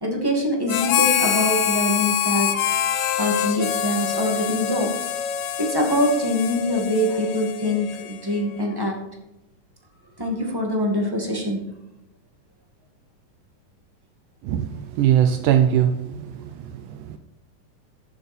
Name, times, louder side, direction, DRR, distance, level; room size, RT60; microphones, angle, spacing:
voice 1, 0.0-2.7 3.2-5.1 5.6-9.0 10.2-11.6, left 1 dB, 10° right, 1 dB, 1.2 m, -24 dB
Harmonica, 0.7-8.4, left 9 dB, 70° left, 1.9 m, -25 dB
voice 2, 14.4-17.2, right 10 dB, 80° right, 8 dB, 2.1 m, -21 dB
14.5 x 7.0 x 4.4 m, 0.92 s
omnidirectional pair, 3.8 m